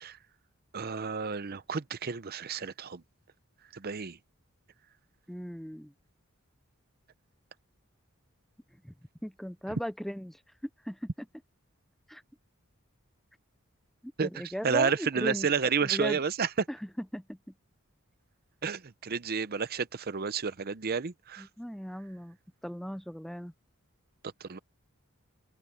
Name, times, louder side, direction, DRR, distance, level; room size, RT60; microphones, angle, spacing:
voice 1, 0.7-3.0 3.7-4.2 14.2-16.7 18.6-21.5 24.4-24.6, right 5 dB, 45° right, 0.7 m, -31 dB
voice 2, 5.3-5.9 8.8-8.9 9.2-10.4 10.8-11.1 12.1-12.2 14.0-15.5 15.8-16.2 16.7-17.4 21.4-22.4 22.6-23.5, equal, ahead, 0.5 m, -37 dB
open air
head